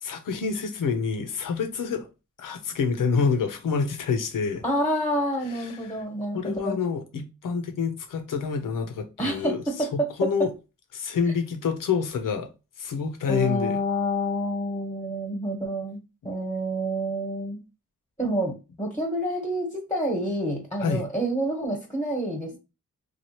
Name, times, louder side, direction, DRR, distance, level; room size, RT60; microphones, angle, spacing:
voice 1, 0.0-2.1 2.4-4.6 5.5-6.0 6.3-9.6 9.9-10.5 10.9-12.5 12.8-13.8 20.8-21.0, left 5 dB, 80° left, 0.8 m, -27 dB
voice 2, 4.6-6.8 9.2-10.5 13.3-17.6 18.2-22.6, equal, 5° left, 1.1 m, -28 dB
3.2 x 2.4 x 2.9 m
cardioid pair, 70°, 31 cm